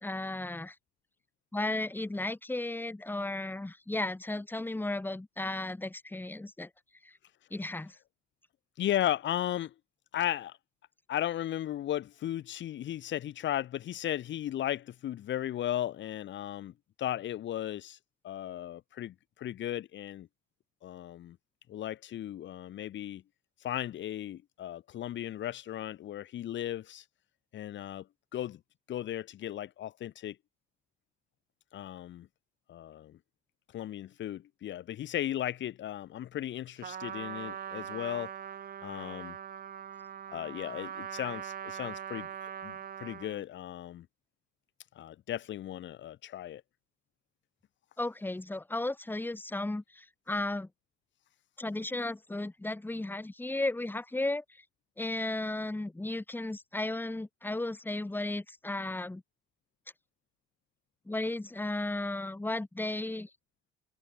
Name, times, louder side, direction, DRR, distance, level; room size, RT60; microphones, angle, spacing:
voice 1, 0.0-0.7 1.5-6.7 7.5-7.9 48.0-50.7 51.6-54.4 55.0-59.2 61.1-63.3, left 2 dB, 10° left, 1.3 m, -34 dB
voice 2, 8.8-9.7 10.1-10.6 11.1-16.7 17.0-18.0 18.2-20.3 20.8-21.4 21.7-23.2 23.6-27.0 27.5-28.1 28.3-28.6 28.9-30.4 31.7-32.3 32.7-33.2 33.7-38.3 38.8-39.4 40.3-42.3 42.6-44.1 44.9-46.6, left 12 dB, 70° left, 1.1 m, -36 dB
Trumpet, 36.8-43.4, right 8 dB, 50° right, 1.0 m, -41 dB
cardioid pair, 90°, 20 cm